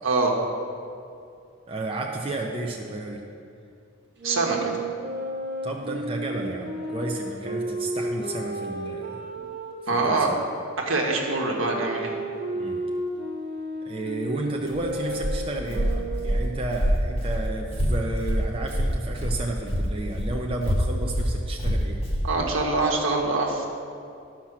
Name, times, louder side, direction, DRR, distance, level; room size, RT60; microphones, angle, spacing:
voice 1, 0.0-0.3 4.2-4.7 9.9-10.3 10.8-12.1 22.2-23.7, right 3 dB, 70° right, 0 dB, 1.4 m, -24 dB
voice 2, 1.7-3.2 5.6-9.3 9.9-10.4 12.5-12.8 13.8-22.0, right 2 dB, 25° right, -1 dB, 0.6 m, -32 dB
Wind instrument woodwind instrument, 4.2-10.0 10.8-16.6, right 2 dB, 55° right, 1.4 m, -33 dB
Walk footsteps, 14.6-19.4 19.7-22.3, equal, 25° left, 1.3 m, -25 dB
11.5 x 5.9 x 6.1 m, 2.4 s
head